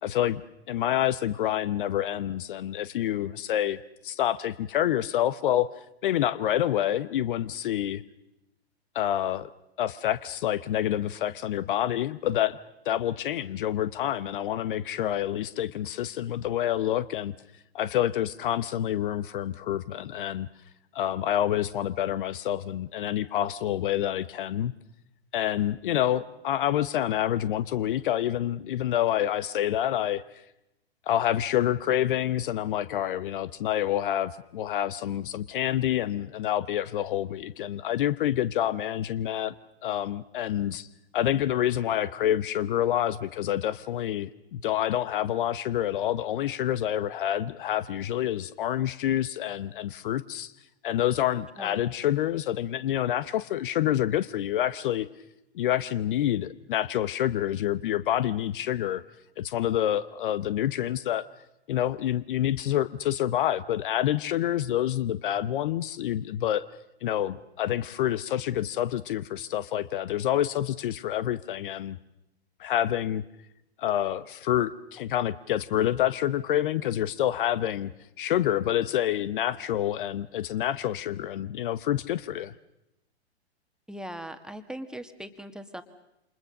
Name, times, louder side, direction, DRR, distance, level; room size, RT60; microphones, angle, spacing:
voice 1, 0.0-0.4 0.7-5.7 6.0-8.0 8.9-9.5 9.8-12.6 12.8-17.3 17.7-20.5 20.9-24.7 25.3-30.2 31.1-39.5 39.8-40.9 41.1-50.5 50.8-55.1 55.5-59.0 59.4-61.3 61.7-66.7 67.0-72.0 72.6-73.2 73.8-77.9 78.2-82.5, left 11 dB, 50° left, 16 dB, 1.1 m, -27 dB
voice 2, 83.9-85.8, right 1 dB, ahead, 8 dB, 1.8 m, -40 dB
28.5 x 27.0 x 6.6 m, 0.88 s
figure-of-eight pair, 105°, 33 cm